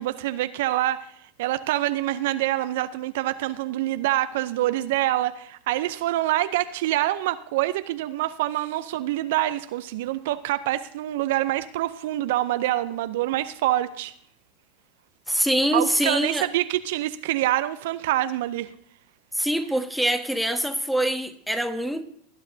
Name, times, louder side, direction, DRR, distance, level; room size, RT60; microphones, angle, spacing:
voice 1, 0.0-14.1 15.7-18.7, right 15 dB, 65° right, 12 dB, 0.5 m, -26 dB
voice 2, 15.3-16.5 19.3-22.0, right 1 dB, ahead, 6 dB, 1.3 m, -24 dB
18.5 x 10.5 x 2.7 m, 0.65 s
hypercardioid pair, 90°, 0 cm